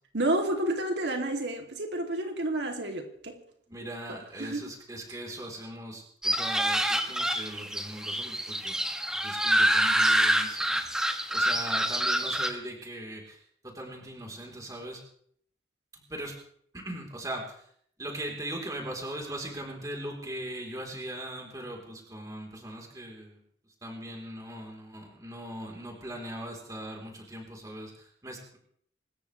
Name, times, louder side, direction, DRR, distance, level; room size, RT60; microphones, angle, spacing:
voice 1, 0.1-3.4 4.4-4.7, right 1 dB, 80° right, 2.7 m, -30 dB
voice 2, 3.7-8.8 9.1-10.8 11.3-15.0 15.9-16.4 16.7-17.7 18.0-23.4 23.8-28.6, right 1 dB, 20° right, 3.6 m, -40 dB
sound 1, 6.2-12.5, right 1 dB, 5° right, 1.1 m, -26 dB
25.5 x 13.5 x 3.3 m
head